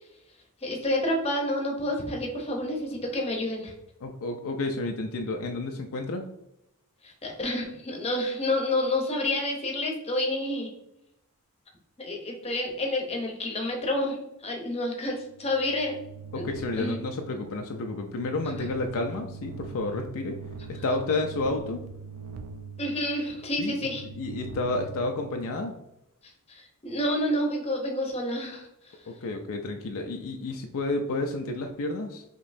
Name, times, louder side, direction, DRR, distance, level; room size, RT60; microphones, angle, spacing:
voice 1, 0.6-3.7 7.0-10.7 12.0-16.0 16.3-16.4 16.8-17.0 22.8-24.0 26.5-29.0, left 1 dB, 30° left, 1 dB, 0.8 m, -29 dB
voice 2, 4.0-6.3 16.3-20.4 20.7-21.9 23.6-25.7 29.1-32.2, left 2 dB, 65° left, 4 dB, 0.4 m, -31 dB
sound 1, 15.2-25.9, right 5 dB, 90° right, 0.4 m, -43 dB
5.1 x 2.9 x 2.6 m, 0.84 s
head